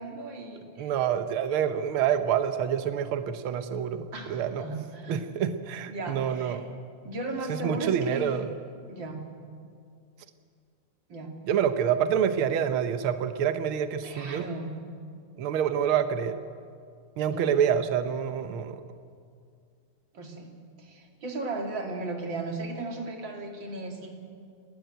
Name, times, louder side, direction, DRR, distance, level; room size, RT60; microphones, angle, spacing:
voice 1, 0.0-0.9 4.1-5.2 5.9-6.6 7.0-8.4 8.9-9.3 11.1-11.3 14.0-14.7 17.3-17.5 20.1-20.5 20.8-24.1, right 2 dB, 40° right, 2 dB, 3.0 m, -36 dB
voice 2, 0.8-4.6 5.1-6.7 7.5-8.5 11.4-14.5 15.4-16.4 17.2-18.8, right 8 dB, 85° right, 9 dB, 1.1 m, -27 dB
29.5 x 12.5 x 9.1 m, 2.2 s
omnidirectional pair, 3.6 m